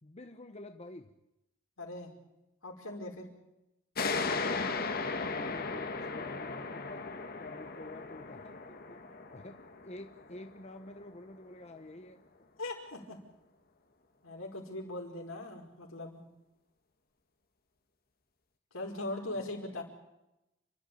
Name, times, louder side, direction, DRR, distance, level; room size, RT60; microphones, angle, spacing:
voice 1, 0.0-1.1 5.0-7.0 7.4-12.2, left 2 dB, 30° left, 6 dB, 1.0 m, -49 dB
voice 2, 1.8-2.1 2.6-3.3 12.6-13.2 14.2-16.2 18.7-19.8, left 2 dB, 80° left, 1 dB, 5.2 m, -40 dB
sound 1, 3.9-11.1, left 4 dB, 45° left, 1.7 m, -36 dB
30.0 x 12.5 x 8.6 m, 0.90 s
head